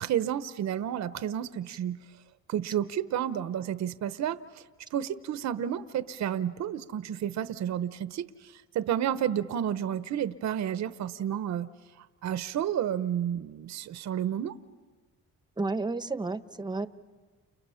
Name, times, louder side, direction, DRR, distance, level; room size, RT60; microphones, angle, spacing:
voice 1, 0.0-2.0 2.5-4.6 4.9-11.7 12.2-14.5, right 10 dB, 65° right, 13 dB, 0.8 m, -31 dB
voice 2, 15.6-16.9, right 3 dB, 15° right, 12 dB, 0.9 m, -31 dB
30.0 x 30.0 x 5.7 m, 1.4 s
cardioid pair, 90°, 30 cm